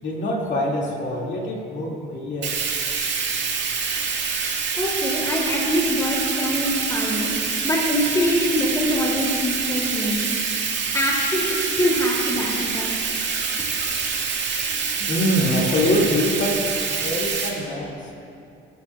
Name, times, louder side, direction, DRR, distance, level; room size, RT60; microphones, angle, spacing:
voice 1, 0.0-2.6 3.8-4.1 15.0-16.7 17.0-18.1, left 1 dB, 65° left, -4 dB, 2.4 m, -24 dB
Bathtub (filling or washing), 2.4-17.5, right 5 dB, 65° right, 1.8 m, -26 dB
voice 2, 4.7-7.4 7.6-10.3 10.9-12.9, left 1 dB, 15° left, -2 dB, 2.8 m, -24 dB
16.0 x 13.0 x 2.4 m, 2.6 s
cardioid pair, 90°, 20 cm